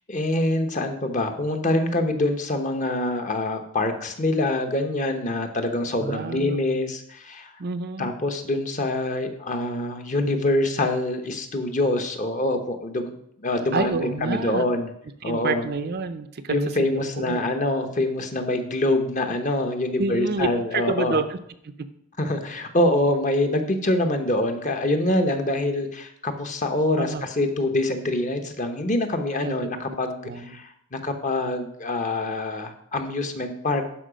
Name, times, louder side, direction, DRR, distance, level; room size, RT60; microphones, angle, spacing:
voice 1, 0.1-7.5 8.0-13.1 13.4-14.9 15.2-15.7 16.5-21.2 22.2-33.9, left 1 dB, 35° left, 6 dB, 0.9 m, -25 dB
voice 2, 6.0-6.8 7.6-8.1 13.7-14.8 15.2-17.5 20.0-21.4 27.0-27.2 29.3-29.7 30.2-30.6, right 4 dB, 45° right, 10 dB, 0.5 m, -29 dB
11.5 x 4.9 x 5.1 m, 0.73 s
head